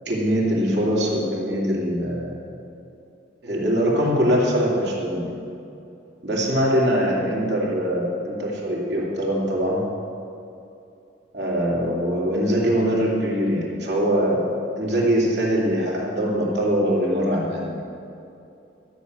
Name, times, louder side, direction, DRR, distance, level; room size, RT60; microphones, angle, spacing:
voice 1, 0.1-2.4 3.4-5.3 6.2-9.8 11.3-14.5 14.8-17.8, equal, 65° right, -4 dB, 2.5 m, -22 dB
13.0 x 6.3 x 7.6 m, 2.8 s
head